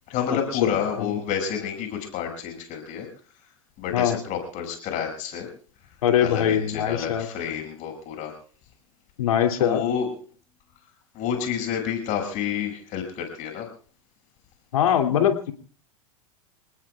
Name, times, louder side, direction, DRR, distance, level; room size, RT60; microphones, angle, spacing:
voice 1, 0.1-3.1 3.8-5.5 6.2-8.3 9.6-10.1 11.1-13.7, left 8 dB, 45° left, 3 dB, 6.3 m, -29 dB
voice 2, 6.0-7.3 9.2-9.8 14.7-15.5, left 9 dB, 80° left, 5 dB, 2.6 m, -22 dB
29.0 x 19.5 x 2.4 m, 0.42 s
hypercardioid pair, 105°, 18 cm